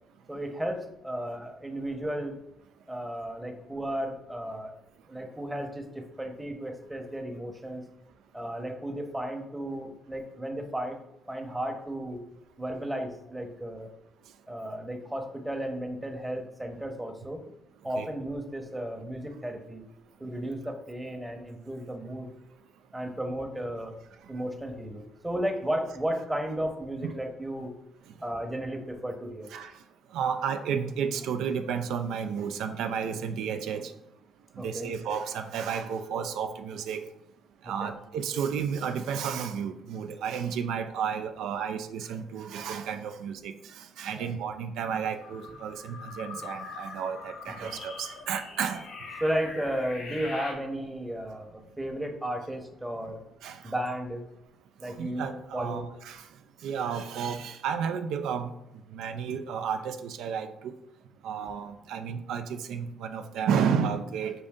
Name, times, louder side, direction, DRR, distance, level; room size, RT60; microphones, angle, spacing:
voice 1, 0.3-2.3 2.9-4.7 5.1-7.9 8.3-11.0 11.3-12.2 12.6-13.9 14.5-17.4 17.8-19.8 20.2-22.3 22.9-23.9 24.3-27.7 28.2-29.5 34.6-34.9 37.8-37.9 44.1-44.2 47.5-47.8 49.2-53.2 53.6-54.2 54.8-55.9, right 1 dB, 10° right, 3 dB, 0.8 m, -34 dB
voice 2, 30.1-33.9 34.6-37.0 37.6-48.8 53.4-53.7 54.8-56.2 56.6-58.5 58.9-60.5 61.2-64.3, right 7 dB, 85° right, 7 dB, 0.3 m, -32 dB
sound 1, 45.2-50.5, left 3 dB, 80° left, 1.1 m, -42 dB
5.2 x 2.6 x 3.6 m, 0.86 s
cardioid pair, 90°, 0 cm